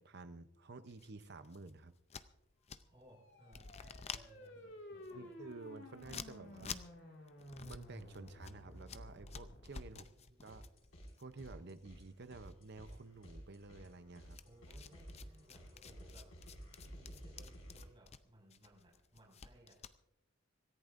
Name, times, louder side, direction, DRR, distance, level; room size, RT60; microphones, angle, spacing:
voice 1, 0.0-1.9 5.1-6.8 7.6-10.1 10.4-10.7 11.2-14.4, right 3 dB, 55° right, 12 dB, 0.7 m, -52 dB
sound 1, 0.9-3.1 3.4-12.2 12.4-13.3 14.3-20.0, left 6 dB, 30° left, 0.5 m, -51 dB
voice 2, 2.9-5.4 9.9-10.6 14.4-16.3 16.8-19.8, right 1 dB, 25° right, -3 dB, 5.9 m, -63 dB
sound 2, 3.0-9.9, left 1 dB, 60° left, 2.2 m, -53 dB
sound 3, 10.5-11.1 11.4-17.8, equal, 85° left, 5.7 m, -54 dB
26.0 x 14.5 x 2.6 m, 0.86 s
head